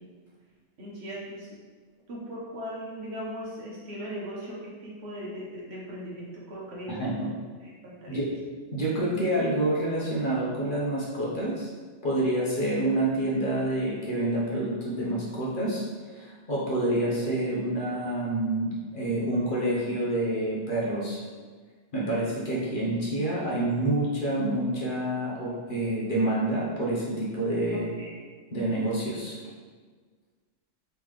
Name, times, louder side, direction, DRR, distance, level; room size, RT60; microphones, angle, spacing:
voice 1, 0.8-1.5 2.1-7.3 7.8-8.2 27.7-28.1, equal, 60° right, -5 dB, 1.1 m, -38 dB
voice 2, 6.9-7.3 8.1-8.3 8.7-11.7 12.0-15.8 16.1-21.2 21.9-27.9 28.5-29.4, right 1 dB, 50° left, -5 dB, 0.9 m, -28 dB
3.7 x 3.3 x 3.1 m, 1.5 s
omnidirectional pair, 1.2 m